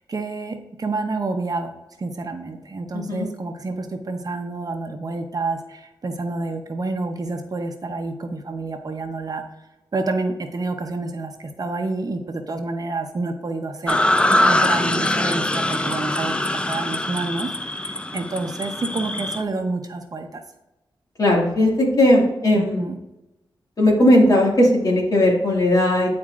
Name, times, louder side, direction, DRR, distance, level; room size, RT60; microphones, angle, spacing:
voice 1, 0.0-1.7 2.0-9.4 9.9-14.0 14.3-16.4 16.7-20.4 22.5-23.0, right 3 dB, 45° right, 5 dB, 0.8 m, -28 dB
voice 2, 2.9-3.3 21.2-22.8 23.8-26.1, left 1 dB, 45° left, -2 dB, 2.0 m, -17 dB
sound 1, 13.9-19.4, left 1 dB, 10° left, 0.4 m, -22 dB
10.0 x 4.3 x 2.5 m, 0.95 s
wide cardioid pair, 100°, 9 cm